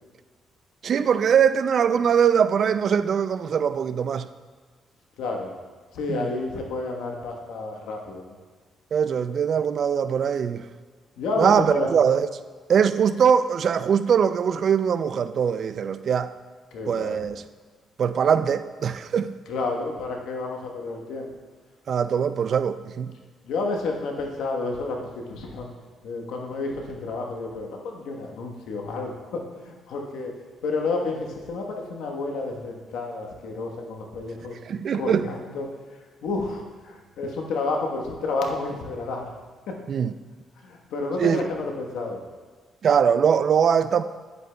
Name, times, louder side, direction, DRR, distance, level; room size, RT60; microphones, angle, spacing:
voice 1, 0.8-4.3 6.1-6.3 8.9-10.7 11.4-12.3 12.7-16.3 16.9-17.4 18.0-19.3 21.9-23.1 34.6-35.3 39.9-40.1 41.2-41.4 42.8-44.0, right 7 dB, 55° right, 0.3 m, -22 dB
voice 2, 5.2-5.5 5.9-8.4 11.2-11.9 16.7-17.2 19.5-21.3 23.4-25.7 26.0-30.3 30.6-34.6 34.9-35.7 36.2-39.3 39.7-39.8 40.6-42.2, left 3 dB, 80° left, 1.2 m, -30 dB
10.0 x 8.0 x 2.3 m
cardioid pair, 90°, 0 cm